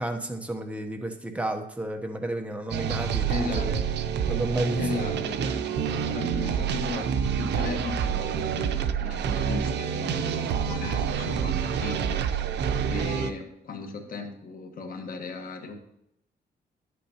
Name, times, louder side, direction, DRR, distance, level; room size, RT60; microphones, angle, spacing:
voice 1, 0.0-3.8 4.3-4.8, right 1 dB, 10° right, 4 dB, 0.9 m, -31 dB
sound 1, 2.7-13.3, right 7 dB, 80° right, 0.6 m, -28 dB
voice 2, 3.3-3.7 4.8-5.7 6.0-12.2 12.9-15.8, left 4 dB, 55° left, 4 dB, 1.4 m, -36 dB
10.5 x 8.5 x 2.9 m, 0.80 s
cardioid pair, 140°, 17 cm